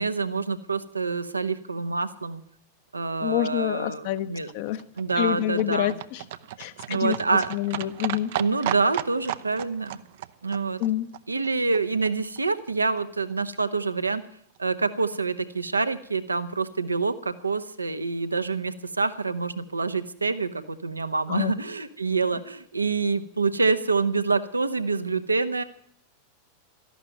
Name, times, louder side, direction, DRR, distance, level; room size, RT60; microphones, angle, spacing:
voice 1, 0.0-2.4 2.9-4.5 5.0-6.0 6.9-7.5 8.4-10.0 10.4-10.8 11.3-14.2 14.6-25.6, right 4 dB, 80° right, 11 dB, 1.0 m, -26 dB
voice 2, 3.2-4.3 4.5-4.8 5.1-6.2 6.6-7.2 7.5-8.3 10.8-11.1 21.3-21.5, left 13 dB, 50° left, 12 dB, 1.0 m, -27 dB
Livestock farm animals working animals, 3.9-12.1 12.4-12.5 12.7-12.8 13.0-13.1 13.3-13.4 13.6-13.7 13.9-14.0 14.2-14.3 14.6-14.7, right 12 dB, 55° right, 0.7 m, -36 dB
13.0 x 11.5 x 9.0 m, 0.64 s
figure-of-eight pair, 90°, 0 cm